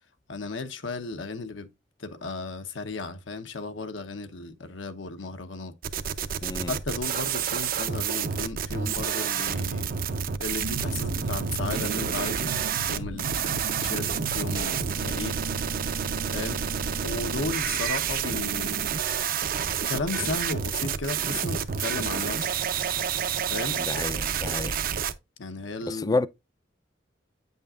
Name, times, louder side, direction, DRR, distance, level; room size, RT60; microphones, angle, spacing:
voice 1, 0.3-1.7 2.0-5.7 6.6-10.0 10.4-12.6 12.9-15.4 16.3-16.6 17.0-18.8 19.9-22.5 23.5-23.8 25.4-26.2, left 3 dB, 80° left, 0.9 m, -35 dB
sound 1, 5.8-25.1, right 7 dB, 50° right, 0.6 m, -29 dB
voice 2, 6.4-6.7 23.8-24.8 25.9-26.3, left 3 dB, 20° left, 0.4 m, -29 dB
sound 2, 10.6-19.2, right 2 dB, 90° right, 0.9 m, -38 dB
8.7 x 5.4 x 2.4 m
head